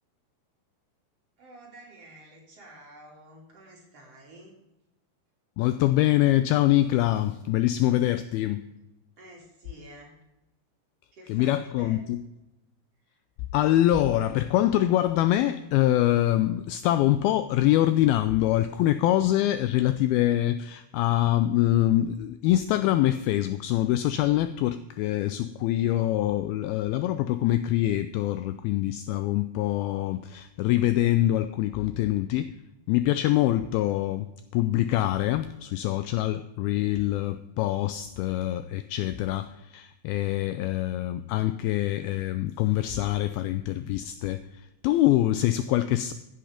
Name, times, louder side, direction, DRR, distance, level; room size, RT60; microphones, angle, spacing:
voice 1, 1.4-4.6 9.2-10.2 11.1-12.2 13.1-13.2, right 1 dB, 40° right, 3.7 m, -50 dB
voice 2, 5.6-8.6 11.3-12.2 13.5-32.5 32.9-34.3 34.5-46.1, left 14 dB, 85° left, 2.2 m, -24 dB
15.5 x 8.6 x 5.1 m
omnidirectional pair, 4.8 m